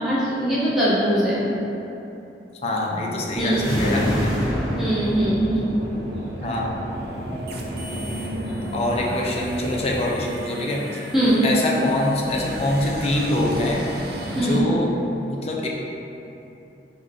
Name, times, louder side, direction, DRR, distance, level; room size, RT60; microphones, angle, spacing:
voice 1, 0.0-1.5 3.4-3.9 4.8-5.7 11.1-11.4 14.3-14.6, right 1 dB, ahead, -11 dB, 0.9 m, -21 dB
voice 2, 2.6-4.3 6.4-6.8 7.9-10.8 11.4-13.8 14.4-14.9 15.3-15.7, left 1 dB, 35° left, -2 dB, 0.4 m, -25 dB
sound 1, 3.3-10.1, right 1 dB, 80° right, 0.8 m, -32 dB
sound 2, 3.4-6.0, equal, 20° right, 1.4 m, -27 dB
sound 3, 6.9-14.6, right 1 dB, 60° right, 0.4 m, -35 dB
3.9 x 2.2 x 3.7 m, 2.9 s
head